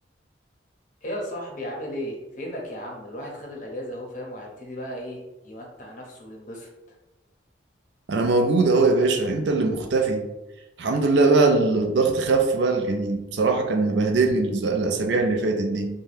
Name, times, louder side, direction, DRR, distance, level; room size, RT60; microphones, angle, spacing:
voice 1, 1.0-6.7, equal, 45° left, 0 dB, 0.6 m, -35 dB
voice 2, 8.1-10.2 10.8-15.9, right 3 dB, 70° right, 4 dB, 0.4 m, -21 dB
2.7 x 2.2 x 3.2 m, 1.0 s
head